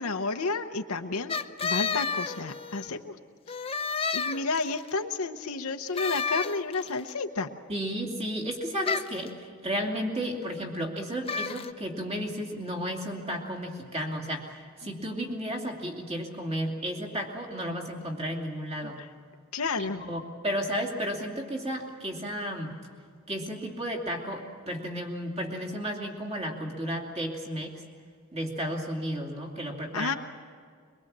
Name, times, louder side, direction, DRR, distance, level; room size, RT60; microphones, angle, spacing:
voice 1, 0.0-1.4 1.6-3.2 3.5-3.6 4.1-7.5 19.0-19.1 19.5-20.0 29.9-30.1, left 3 dB, 90° left, 5 dB, 1.0 m, -31 dB
sound 1, 1.3-2.9 3.5-4.9 6.0-7.0 8.8-9.3 11.3-11.7, left 5 dB, 25° left, 0.6 m, -31 dB
voice 2, 7.7-19.0 19.8-22.8 23.3-27.7 28.3-30.2, equal, 30° right, 2 dB, 2.6 m, -33 dB
23.0 x 22.5 x 7.5 m, 2.1 s
head